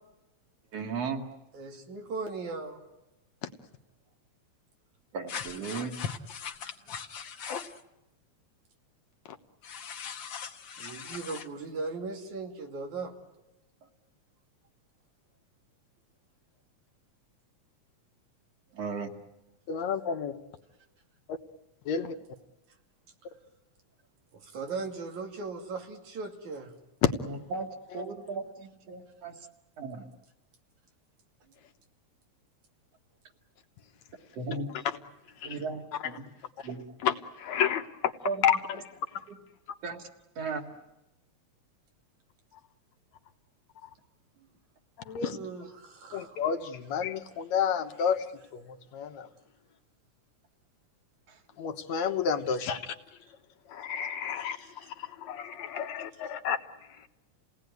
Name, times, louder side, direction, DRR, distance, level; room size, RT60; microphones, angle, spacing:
voice 1, 0.7-1.2 5.1-6.0 18.7-19.1 27.3-27.7 27.9-29.3 29.8-30.0 34.4-34.7 35.4-36.2 36.6-36.8 38.2-38.4 39.8-40.0 40.4-40.6, right 4 dB, 60° right, 3 dB, 3.0 m, -35 dB
voice 2, 1.5-2.8 10.8-13.1 24.3-26.7 45.3-46.4, right 4 dB, 90° right, 2 dB, 3.9 m, -38 dB
sound 1, 5.3-7.8 9.6-11.5, left 7 dB, 50° left, 1.6 m, -39 dB
voice 3, 19.7-20.4 21.9-22.1 27.0-27.1 27.9-28.1 34.4-35.0 35.4-35.6 35.9-36.2 37.0-39.2 45.1-45.4 46.1-48.2 48.5-49.3 51.6-53.0 53.7-56.6, left 8 dB, 75° left, 6 dB, 2.4 m, -30 dB
29.5 x 18.0 x 9.5 m, 0.97 s
omnidirectional pair, 3.3 m